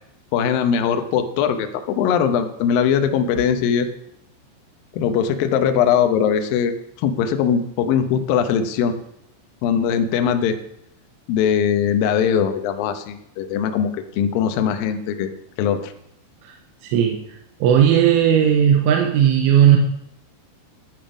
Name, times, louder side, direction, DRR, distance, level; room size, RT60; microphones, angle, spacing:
voice 1, 0.3-3.9 4.9-6.7 7.0-8.9 9.6-10.6 11.3-13.9 14.2-15.3 15.6-15.9, left 8 dB, 85° left, 7 dB, 2.0 m, -20 dB
voice 2, 16.8-17.2 17.6-19.8, right 9 dB, 90° right, 2 dB, 3.4 m, -15 dB
11.0 x 9.2 x 5.2 m, 0.77 s
omnidirectional pair, 5.5 m